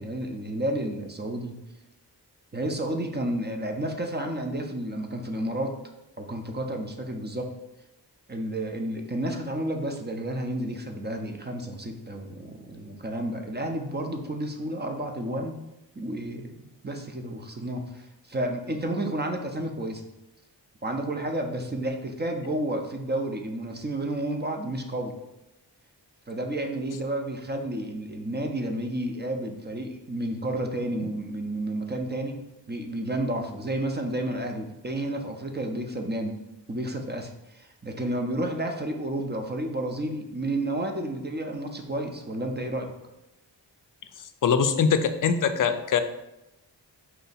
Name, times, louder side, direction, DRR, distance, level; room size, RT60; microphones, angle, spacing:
voice 1, 0.0-1.6 2.5-5.7 6.2-7.5 8.3-15.6 16.0-20.0 20.8-25.1 26.3-32.4 32.7-36.4 36.7-42.9, right 1 dB, 25° right, 3 dB, 0.6 m, -31 dB
voice 2, 44.4-46.0, left 6 dB, 50° left, 9 dB, 0.5 m, -22 dB
4.5 x 2.8 x 4.1 m, 0.92 s
cardioid pair, 60°, 43 cm